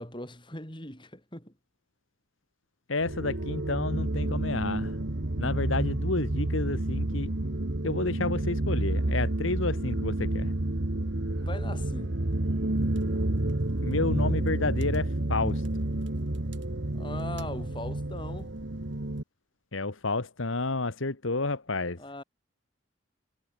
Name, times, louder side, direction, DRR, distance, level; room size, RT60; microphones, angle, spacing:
voice 1, 0.0-1.5 11.3-12.2 16.9-18.5 22.0-22.2, left 1 dB, 25° left, 6.9 m, -40 dB
voice 2, 2.9-4.9 5.4-7.3 7.8-10.5 13.8-15.6 19.7-22.0, left 3 dB, 75° left, 1.7 m, -30 dB
sound 1, 3.0-19.2, right 1 dB, 60° right, 1.5 m, -30 dB
head